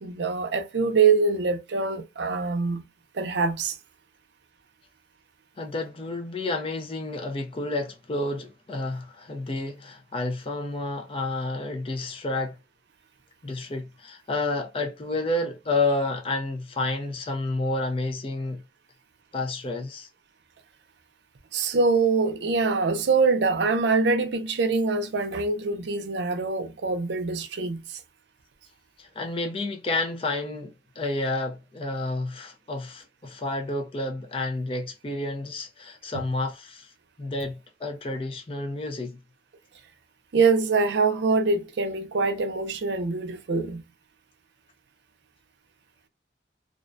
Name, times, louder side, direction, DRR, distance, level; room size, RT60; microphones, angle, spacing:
voice 1, 0.0-2.8 3.1-3.8 21.5-28.0 40.3-43.8, right 4 dB, 75° right, 0.5 m, -24 dB
voice 2, 5.6-12.6 13.4-18.6 19.3-20.1 29.0-36.9 37.2-39.2, left 2 dB, 30° left, 0.4 m, -30 dB
2.4 x 2.1 x 2.5 m
head